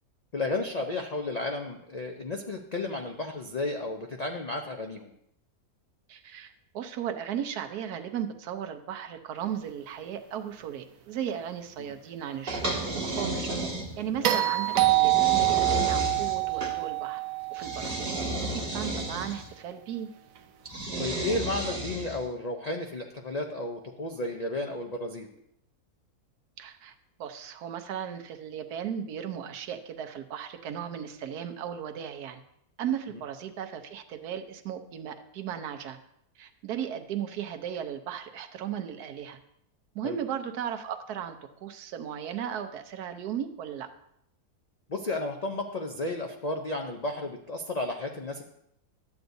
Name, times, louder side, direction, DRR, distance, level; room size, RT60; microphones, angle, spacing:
voice 1, 0.3-5.1 14.1-14.4 21.0-25.3 40.0-40.2 44.9-48.4, left 2 dB, 85° left, 3 dB, 0.3 m, -33 dB
voice 2, 6.1-13.5 14.0-17.2 17.5-18.2 18.5-20.1 26.6-32.4 32.8-36.0 36.4-39.4 39.9-41.4 41.6-43.9, right 9 dB, 85° right, 7 dB, 1.3 m, -36 dB
sound 1, 12.5-14.2 14.8-16.8 17.6-19.5 20.7-22.3, right 1 dB, 40° right, 1.6 m, -32 dB
sound 2, 14.2-18.5 20.8-20.9, right 17 dB, 70° right, 0.9 m, -26 dB
12.0 x 8.0 x 2.6 m, 0.76 s
omnidirectional pair, 1.6 m